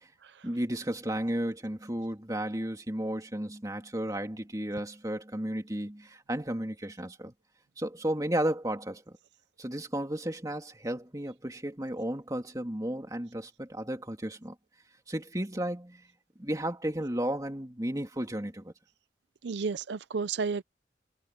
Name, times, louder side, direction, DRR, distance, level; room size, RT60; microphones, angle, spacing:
voice 1, 0.4-7.3 7.8-9.2 9.6-14.5 15.1-16.1 16.4-18.7, right 1 dB, 20° right, 2.5 m, -33 dB
voice 2, 19.4-20.6, right 5 dB, 80° right, 0.5 m, -32 dB
head